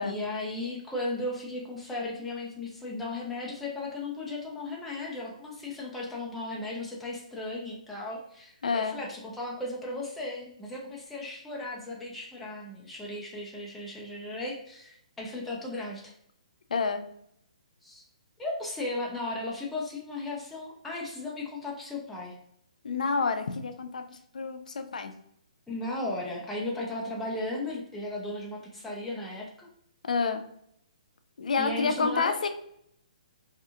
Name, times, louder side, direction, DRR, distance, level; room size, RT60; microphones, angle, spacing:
voice 1, 0.0-16.1 17.8-18.0 18.4-22.4 25.7-29.7 31.6-32.4, left 2 dB, 5° left, -4 dB, 0.3 m, -36 dB
voice 2, 8.6-9.0 16.7-17.0 22.8-25.1 30.0-30.4 31.4-32.5, left 4 dB, 80° left, 8 dB, 0.4 m, -29 dB
2.7 x 2.4 x 2.4 m, 0.71 s
hypercardioid pair, 170°, 4 cm